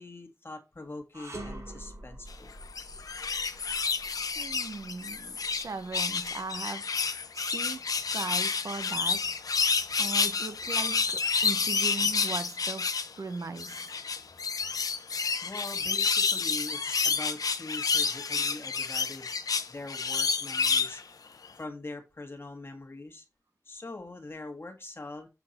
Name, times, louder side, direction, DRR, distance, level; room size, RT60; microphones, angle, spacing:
voice 1, 0.0-2.5 15.4-19.3 19.7-21.2 21.6-23.3 23.7-25.3, left 2 dB, 40° left, 1.7 m, -43 dB
sound 1, 1.1-6.4, right 1 dB, 55° right, 4.3 m, -46 dB
sound 2, 2.6-5.7 5.9-13.1 13.6-21.0 21.4-21.5, left 5 dB, 85° left, 0.7 m, -29 dB
voice 2, 4.3-6.9 7.3-9.3 10.0-12.9 13.2-14.0, right 3 dB, 70° right, 0.9 m, -38 dB
7.4 x 4.4 x 4.2 m
wide cardioid pair, 65°, 6 cm